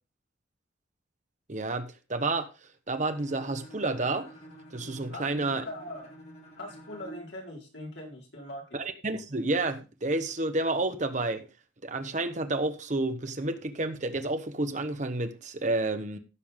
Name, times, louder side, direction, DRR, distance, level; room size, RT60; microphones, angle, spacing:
voice 1, 1.5-2.5 2.9-4.3 4.7-5.6 8.7-11.5 11.8-16.2, right 2 dB, 40° right, 1.1 m, -30 dB
Bowed string instrument, 3.1-7.4, equal, 35° left, 3.6 m, -49 dB
voice 2, 5.1-6.1 6.6-8.6, left 1 dB, 65° left, 4.6 m, -41 dB
15.5 x 7.1 x 3.6 m
head